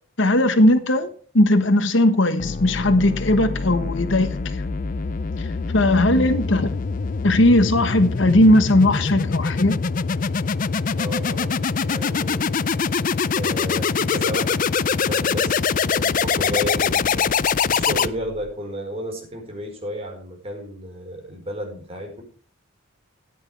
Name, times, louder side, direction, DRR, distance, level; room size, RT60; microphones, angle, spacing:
voice 1, 0.2-1.1 1.3-4.4 5.4-5.5 5.7-6.7 7.2-9.8, left 1 dB, 60° left, 1.2 m, -18 dB
sound 1, 2.4-18.5, left 5 dB, 40° left, 0.4 m, -24 dB
voice 2, 5.9-6.4 11.0-12.6 13.3-15.6 15.9-17.3 17.7-22.2, equal, 30° right, 4.9 m, -33 dB
14.5 x 10.5 x 3.4 m
head